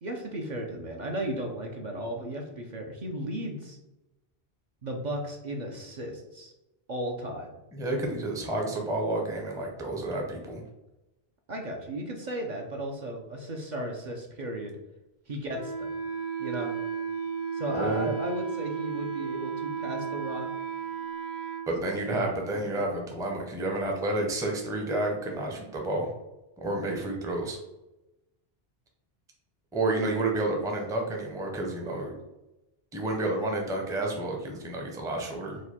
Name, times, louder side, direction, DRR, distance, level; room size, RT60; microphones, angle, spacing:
voice 1, 0.0-3.8 4.8-6.5 6.9-7.5 11.5-14.8 15.3-15.9 16.4-16.7 17.5-20.5 21.8-22.8, equal, 50° right, 1 dB, 0.6 m, -35 dB
voice 2, 7.7-10.6 17.7-18.1 21.7-26.1 26.6-27.6 29.7-32.2 32.9-35.6, right 2 dB, 5° right, 1 dB, 0.5 m, -30 dB
Wind instrument woodwind instrument, 15.5-21.7, right 7 dB, 80° right, 1.5 m, -34 dB
4.8 x 2.2 x 4.1 m, 0.99 s
omnidirectional pair, 1.1 m